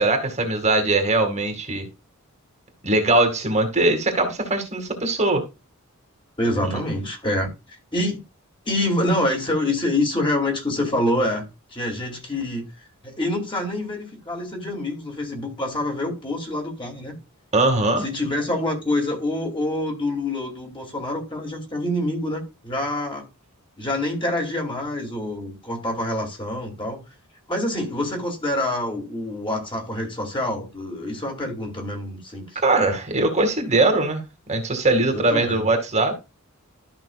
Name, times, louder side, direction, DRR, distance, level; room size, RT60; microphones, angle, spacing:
voice 1, 0.0-1.9 2.8-5.4 6.6-6.8 17.5-18.0 32.6-34.2 34.5-36.1, right 2 dB, 30° right, 2.0 m, -21 dB
voice 2, 6.4-8.2 8.6-11.4 11.7-12.7 13.0-17.2 18.0-23.3 23.8-27.0 27.5-32.6 35.1-35.7, left 1 dB, 20° left, 2.7 m, -26 dB
13.0 x 5.6 x 2.4 m
head